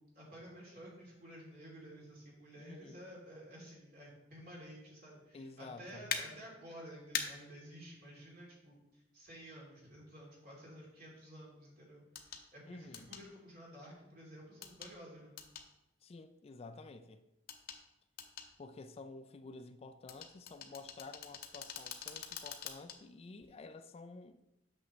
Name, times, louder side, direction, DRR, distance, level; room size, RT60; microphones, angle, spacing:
voice 1, 0.0-15.4, equal, 55° right, 2.9 m, -53 dB
voice 2, 2.6-3.0 5.3-6.1 12.7-13.1 16.0-17.2 18.6-24.4, left 3 dB, 35° left, 0.3 m, -51 dB
sound 1, 6.1-6.2 7.1-7.3 9.3-9.4 12.2-12.4 12.9-13.2 14.6-14.9 15.4-15.7 17.5-17.8 18.2-18.5 20.1-23.0 23.4-23.5, left 7 dB, 55° left, 0.8 m, -42 dB
8.4 x 6.3 x 3.1 m
head